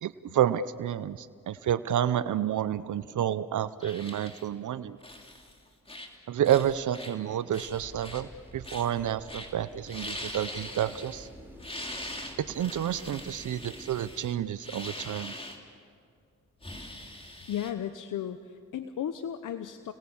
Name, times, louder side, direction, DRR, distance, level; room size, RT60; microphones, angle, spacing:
voice 1, 0.0-5.0 6.3-8.3 8.5-11.3 12.4-15.3, right 10 dB, 75° right, 14 dB, 0.7 m, -29 dB
sound 1, 3.8-4.5 5.0-5.5 5.9-6.2 6.5-7.1 7.5-8.2 8.6-9.0 9.3-9.5 9.8-11.3 11.6-15.6 16.6-17.7, left 1 dB, 20° left, 3.0 m, -42 dB
sound 2, 7.7-13.9, equal, 5° right, 4.4 m, -50 dB
voice 2, 17.5-19.9, left 10 dB, 80° left, 10 dB, 0.8 m, -35 dB
29.5 x 19.0 x 7.1 m, 2.2 s
cardioid pair, 65°, 31 cm